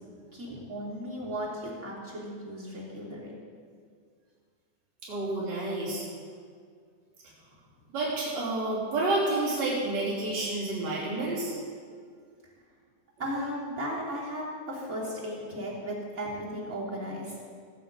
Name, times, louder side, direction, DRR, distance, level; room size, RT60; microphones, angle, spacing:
voice 1, 0.3-3.3 13.2-17.3, equal, 25° right, -6 dB, 3.3 m, -36 dB
voice 2, 5.0-6.0 7.9-11.6, right 2 dB, 65° right, -7 dB, 4.6 m, -29 dB
17.0 x 8.9 x 5.3 m, 2.1 s
omnidirectional pair, 3.3 m